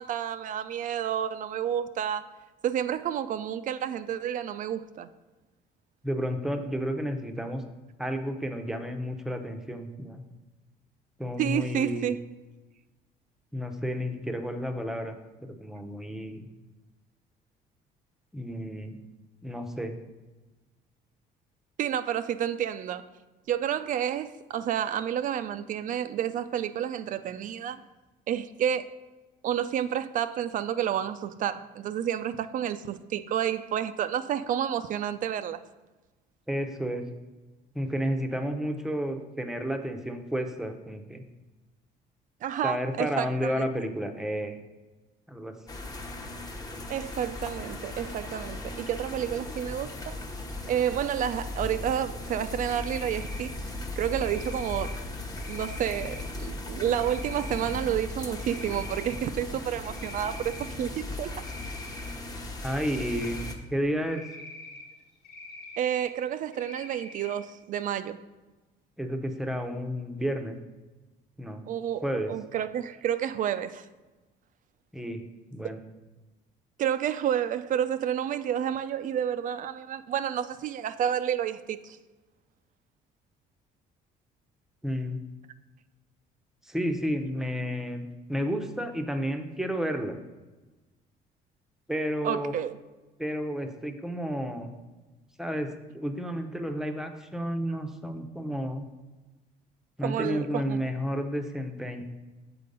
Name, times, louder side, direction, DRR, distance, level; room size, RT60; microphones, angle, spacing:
voice 1, 0.0-2.3 2.6-5.1 11.4-12.2 21.8-23.0 23.5-27.8 28.3-28.9 29.4-35.6 42.4-43.5 46.9-50.1 50.7-55.0 55.5-61.3 65.8-68.2 71.7-73.9 76.8-82.0 92.2-92.8 100.0-100.8, right 10 dB, 50° right, 0.4 m, -30 dB
voice 2, 6.0-7.6 8.0-10.2 11.2-12.1 13.5-15.1 15.4-16.5 18.3-19.0 19.4-19.9 36.5-37.0 37.7-41.2 42.6-44.6 45.3-45.5 62.6-63.4 63.7-64.2 69.0-70.6 71.4-71.6 72.0-72.3 74.9-75.2 75.5-75.8 84.8-85.2 86.6-90.2 91.9-92.5 93.2-94.7 95.4-95.7 95.9-98.9 100.0-102.0, equal, 5° right, 0.7 m, -31 dB
sound 1, 45.7-63.5, left 2 dB, 20° left, 0.9 m, -37 dB
Cricket, 52.6-53.5 54.1-54.9 55.4-56.2 56.9-57.8 58.2-59.2 59.5-60.7 61.3-62.1 62.6-63.5 64.0-64.8 65.2-66.1 66.5-67.3, left 2 dB, 75° left, 1.2 m, -45 dB
6.8 x 4.5 x 5.2 m
cardioid pair, 110°, 17 cm